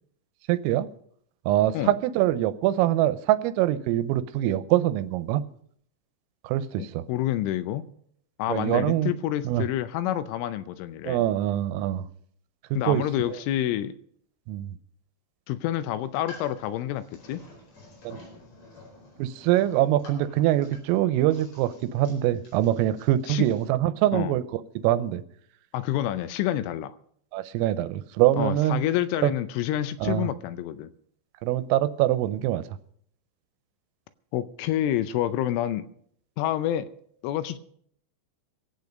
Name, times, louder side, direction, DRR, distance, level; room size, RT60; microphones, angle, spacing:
voice 1, 0.5-0.9 1.5-5.4 6.4-7.0 8.5-9.1 9.4-9.7 11.0-12.1 12.7-13.4 14.5-14.8 18.0-18.2 19.2-25.2 27.3-28.8 29.2-29.3 30.0-30.3 31.4-32.6, right 13 dB, 85° right, 13 dB, 3.3 m, -24 dB
voice 2, 7.1-7.9 8.4-11.2 12.8-13.9 15.5-17.4 23.3-23.5 24.1-24.4 25.7-27.0 28.4-30.9 34.3-35.9 36.4-36.9 37.2-37.6, left 12 dB, 80° left, 12 dB, 3.0 m, -28 dB
sound 1, 16.0-23.7, left 2 dB, 60° left, 6.5 m, -50 dB
23.0 x 8.4 x 5.2 m, 0.67 s
omnidirectional pair, 5.9 m